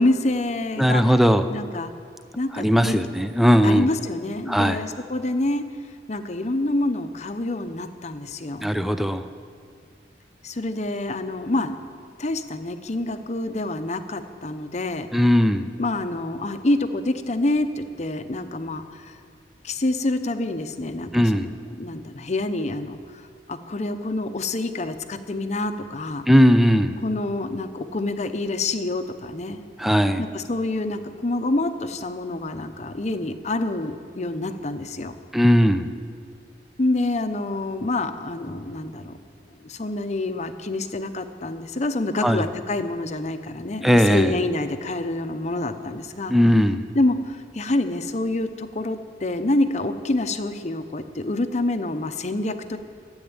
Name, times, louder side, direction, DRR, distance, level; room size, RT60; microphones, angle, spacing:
voice 1, 0.0-1.1 1.5-1.9 2.4-3.0 3.6-5.6 6.1-8.7 10.4-11.7 12.2-15.1 15.8-19.1 19.6-21.5 21.8-23.0 23.5-26.2 27.0-29.6 30.2-35.2 36.8-39.2 39.6-46.3 46.9-52.8, left 2 dB, 40° left, 8 dB, 0.8 m, -27 dB
voice 2, 0.8-1.5 2.6-3.9 4.5-4.8 8.6-9.2 15.1-15.7 21.1-21.5 26.3-27.0 29.8-30.2 35.3-35.9 42.2-42.4 43.8-44.4 46.3-46.8, equal, ahead, 9 dB, 0.5 m, -18 dB
13.5 x 8.0 x 8.8 m, 2.2 s
head